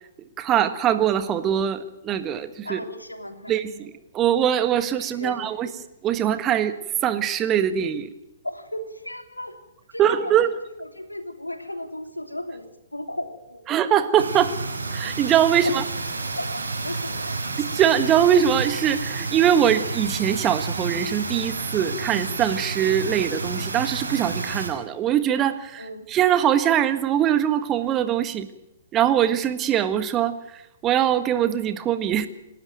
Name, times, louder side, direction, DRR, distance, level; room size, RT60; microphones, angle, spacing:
voice 1, 0.2-2.8 3.5-5.7 6.0-6.8 7.0-8.1 10.0-10.5 13.7-14.6 14.9-15.8 17.6-28.5 28.9-32.3, right 9 dB, 20° right, 11 dB, 1.5 m, -22 dB
voice 2, 2.6-3.5 5.0-5.7 8.4-9.6 9.9-10.3 10.7-12.7 12.9-13.6 15.5-15.8 16.3-17.4 25.8-26.1, left 1 dB, 85° left, 6 dB, 3.2 m, -35 dB
sound 1, 14.2-24.7, right 3 dB, 70° right, 5.6 m, -30 dB
28.0 x 12.5 x 9.1 m, 0.90 s
figure-of-eight pair, 120°, 0 cm